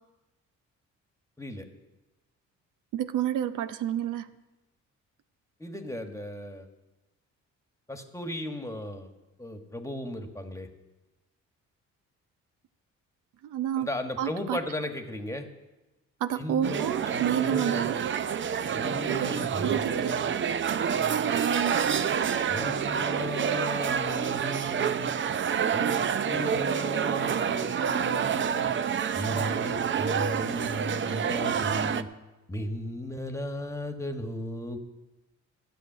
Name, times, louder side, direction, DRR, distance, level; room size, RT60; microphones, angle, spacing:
voice 1, 2.9-4.3 13.4-14.6 16.2-18.0 19.1-19.3 19.6-20.2 21.3-21.8, right 10 dB, 85° right, 11 dB, 0.7 m, -30 dB
voice 2, 5.6-6.7 7.9-9.1 9.4-10.7 13.8-15.5 16.4-16.8 17.1-17.9 18.7-20.2 22.5-25.1 25.7-25.9 26.2-28.7 29.1-32.1 32.5-34.8, left 1 dB, 10° left, 6 dB, 1.4 m, -36 dB
sound 1, 16.6-32.0, right 7 dB, 40° right, 0.6 m, -28 dB
13.0 x 6.6 x 9.0 m, 1.1 s
cardioid pair, 90°, 30 cm